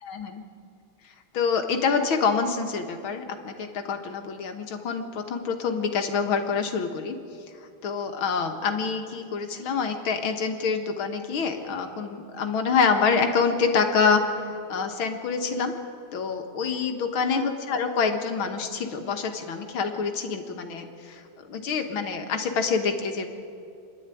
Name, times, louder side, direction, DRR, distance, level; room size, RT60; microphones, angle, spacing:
voice 1, 0.0-0.4 1.3-7.2 7.8-14.2 14.7-15.7 16.1-23.3, left 5 dB, 80° left, 5 dB, 2.3 m, -26 dB
25.5 x 11.5 x 9.1 m, 2.6 s
omnidirectional pair, 2.2 m